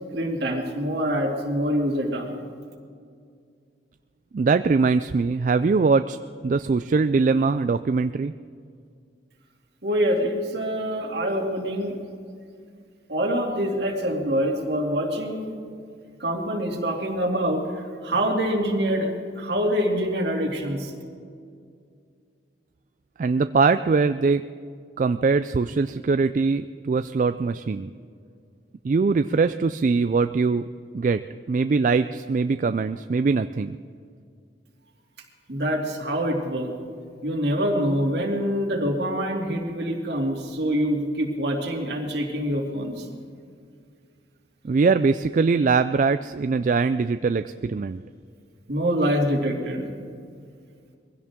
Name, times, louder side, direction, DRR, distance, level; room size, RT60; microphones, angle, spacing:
voice 1, 0.1-2.3 9.8-12.0 13.1-15.5 16.2-20.9 35.5-36.7 37.2-43.1 48.7-49.9, equal, 65° right, 0 dB, 2.7 m, -25 dB
voice 2, 4.3-6.2 6.4-8.3 23.2-24.5 25.0-27.9 28.8-30.6 30.9-31.2 31.5-33.8 44.6-48.0, right 4 dB, 45° right, 11 dB, 0.3 m, -22 dB
22.5 x 16.0 x 3.7 m, 2.2 s
head